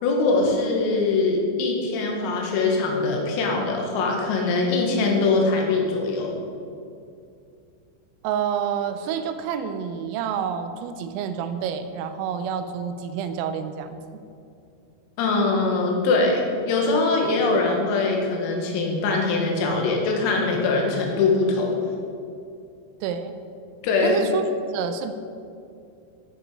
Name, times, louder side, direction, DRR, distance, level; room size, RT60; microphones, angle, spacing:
voice 1, 0.0-6.3 15.2-21.7 23.8-24.2, left 3 dB, 85° left, 0 dB, 4.4 m, -22 dB
voice 2, 8.2-14.0 23.0-23.3 24.0-25.1, right 7 dB, 85° right, 9 dB, 3.3 m, -28 dB
15.5 x 8.8 x 4.9 m, 2.5 s
omnidirectional pair, 5.9 m